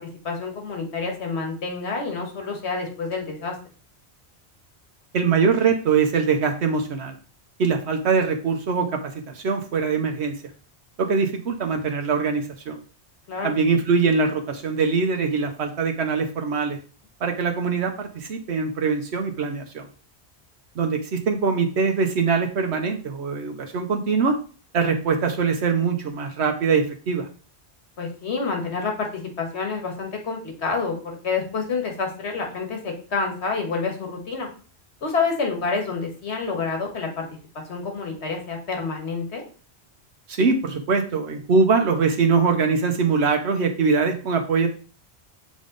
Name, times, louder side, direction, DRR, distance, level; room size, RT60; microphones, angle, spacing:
voice 1, 0.2-3.5 13.3-13.6 28.0-34.5 35.0-37.3 37.5-39.4, left 4 dB, 85° left, 2 dB, 1.7 m, -28 dB
voice 2, 5.1-7.2 7.6-10.3 11.0-12.8 13.4-16.8 17.2-19.9 20.8-24.4 24.7-27.3 40.3-44.7, right 5 dB, 80° right, 4 dB, 1.1 m, -22 dB
7.3 x 3.6 x 3.8 m, 0.39 s
omnidirectional pair, 1.1 m